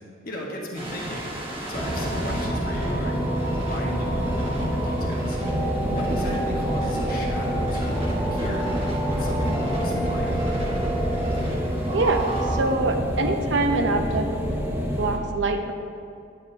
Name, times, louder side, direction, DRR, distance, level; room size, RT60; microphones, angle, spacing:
voice 1, 0.2-1.3 1.7-3.2 3.7-5.4 5.8-8.0 8.3-8.7 9.0-10.3, left 1 dB, 50° left, -3 dB, 1.4 m, -35 dB
sound 1, 0.7-12.6, right 1 dB, 30° right, 1.3 m, -29 dB
Oil Burner, 1.7-15.2, equal, 10° right, 0.7 m, -28 dB
voice 2, 11.9-14.3 15.0-15.7, right 2 dB, 70° right, 5 dB, 0.7 m, -24 dB
9.4 x 8.7 x 2.7 m, 2.4 s
head